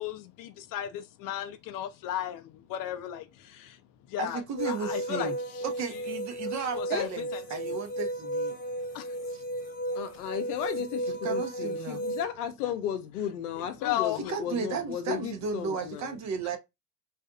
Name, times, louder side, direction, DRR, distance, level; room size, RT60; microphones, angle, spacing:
voice 1, 0.0-3.8 4.1-4.4 4.7-5.3 6.8-7.1 8.9-9.1 13.8-14.3, left 12 dB, 50° left, 0.5 m, -34 dB
voice 2, 4.2-5.4 5.6-8.5 9.3-9.4 11.2-12.0 14.1-16.6, right 5 dB, 40° right, 0.7 m, -34 dB
sound 1, 4.6-12.2, right 1 dB, 20° left, 1.0 m, -34 dB
voice 3, 9.9-16.2, left 9 dB, 90° left, 0.6 m, -34 dB
2.6 x 2.4 x 2.3 m
supercardioid pair, 90°, 44 cm